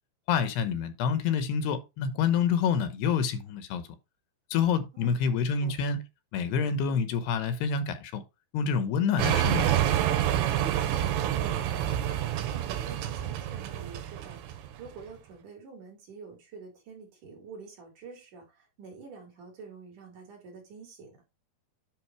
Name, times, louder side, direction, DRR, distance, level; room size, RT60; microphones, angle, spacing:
voice 1, 0.3-3.8 4.5-6.0 6.3-8.2 8.5-9.7, left 6 dB, 75° left, 3.1 m, -27 dB
sound 1, 9.2-14.9, right 11 dB, 85° right, 3.2 m, -28 dB
voice 2, 10.7-21.2, right 4 dB, 50° right, 4.7 m, -48 dB
10.5 x 3.8 x 4.8 m
omnidirectional pair, 4.9 m